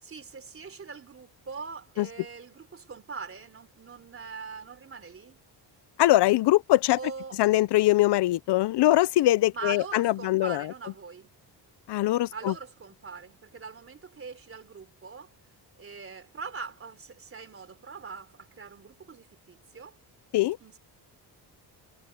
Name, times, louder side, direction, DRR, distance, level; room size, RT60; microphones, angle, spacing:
voice 1, 0.0-5.4 7.0-7.4 9.5-11.3 12.3-15.3 15.7-20.0 20.6-20.8, right 5 dB, 30° right, 3.6 m, -42 dB
voice 2, 6.0-7.0 7.4-10.7 11.9-12.5 20.3-20.6, left 16 dB, 75° left, 0.7 m, -22 dB
cardioid pair, 145°, 41 cm